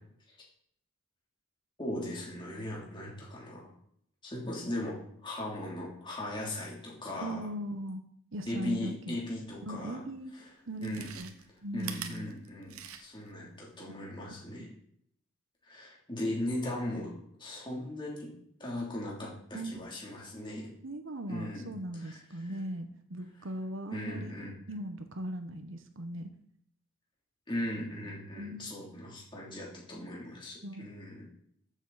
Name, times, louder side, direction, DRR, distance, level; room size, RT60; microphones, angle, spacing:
voice 1, 1.8-3.7 4.2-7.5 8.5-10.0 10.3-10.5 10.8-11.2 11.7-14.7 15.7-17.1 17.4-18.3 18.6-20.7 21.3-21.7 21.9-22.5 23.9-24.5 27.5-31.3, left 1 dB, 20° left, -4 dB, 2.9 m, -38 dB
voice 2, 7.2-8.0 8.3-9.2 9.6-10.3 10.7-11.3 11.6-12.3 19.5-19.7 20.8-26.3 28.4-28.6 30.6-30.9, right 1 dB, 60° right, 8 dB, 1.0 m, -39 dB
Chewing mastication, 9.9-10.0 10.7-13.3 13.7-13.8, right 8 dB, 85° right, 1.1 m, -44 dB
14.0 x 7.3 x 4.1 m, 0.67 s
head